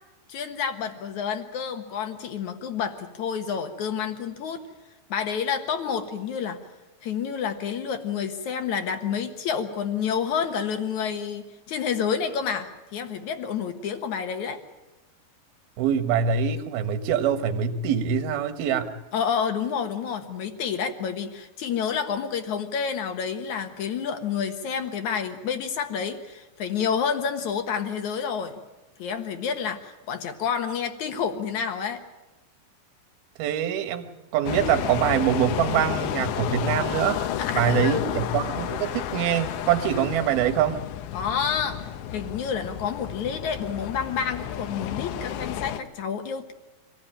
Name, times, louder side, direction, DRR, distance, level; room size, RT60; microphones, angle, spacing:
voice 1, 0.3-4.6 5.1-6.6 7.0-14.6 19.1-28.5 29.0-32.0 37.4-38.2 41.1-41.8 42.1-46.5, left 7 dB, 60° left, 6 dB, 2.1 m, -29 dB
voice 2, 15.8-18.9 33.4-34.1 34.3-37.2 37.5-40.8, right 8 dB, 65° right, 8 dB, 3.0 m, -24 dB
sound 1, 34.5-45.8, left 11 dB, 80° left, 3.1 m, -31 dB
25.0 x 16.5 x 8.9 m, 1.0 s
omnidirectional pair, 5.1 m